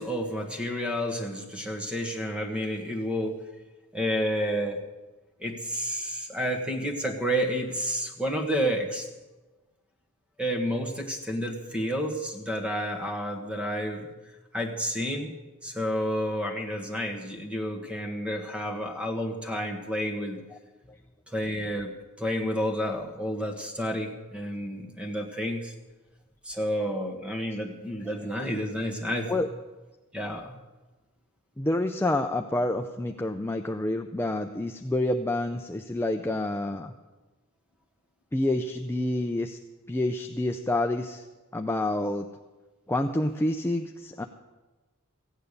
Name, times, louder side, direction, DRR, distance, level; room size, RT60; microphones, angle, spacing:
voice 1, 0.0-3.4 3.9-4.8 5.4-9.1 10.4-14.1 14.5-15.3 15.6-20.4 21.3-25.7 26.4-29.3 30.1-30.6, equal, 5° right, 3 dB, 1.5 m, -30 dB
voice 2, 28.1-28.5 29.3-29.5 31.6-36.9 38.3-39.6 39.9-41.2 41.5-42.3 42.9-44.2, left 1 dB, 10° left, 5 dB, 0.5 m, -28 dB
15.5 x 9.1 x 6.7 m, 1.2 s
head